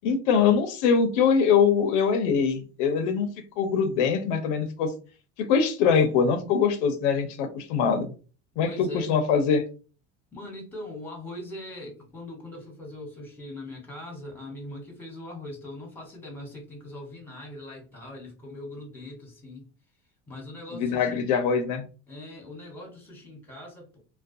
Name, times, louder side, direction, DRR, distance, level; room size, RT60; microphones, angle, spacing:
voice 1, 0.0-3.3 3.6-4.9 5.4-8.1 8.6-9.6 20.7-21.9, left 6 dB, 80° left, 8 dB, 0.6 m, -23 dB
voice 2, 8.6-9.1 10.3-19.7 20.3-21.3 22.1-24.0, left 1 dB, 5° left, 0 dB, 1.1 m, -41 dB
2.3 x 2.2 x 2.5 m, 0.36 s
supercardioid pair, 110°, 34 cm